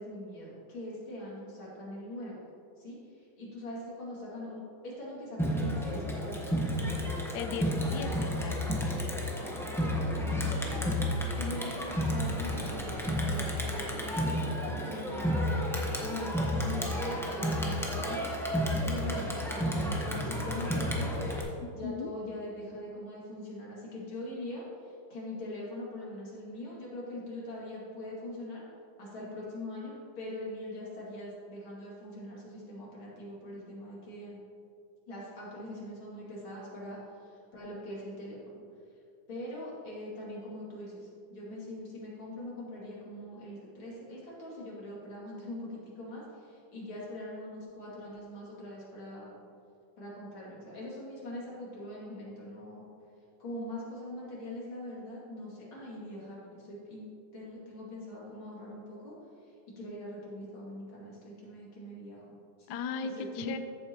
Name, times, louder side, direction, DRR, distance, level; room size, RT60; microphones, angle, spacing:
voice 1, 0.0-2.4 2.8-7.2 9.2-9.4 9.7-11.0 11.3-15.5 16.0-28.6 29.0-34.4 35.1-38.6 39.3-49.4 50.0-52.9 53.4-59.1 59.4-62.7 63.0-63.5, left 1 dB, 85° left, -6 dB, 3.3 m, -42 dB
Crowd, 5.4-21.4, equal, ahead, 0.5 m, -31 dB
voice 2, 7.3-8.6 21.8-22.1 62.7-63.6, left 6 dB, 70° left, 8 dB, 1.0 m, -37 dB
14.0 x 8.0 x 3.0 m, 2.5 s
omnidirectional pair, 2.1 m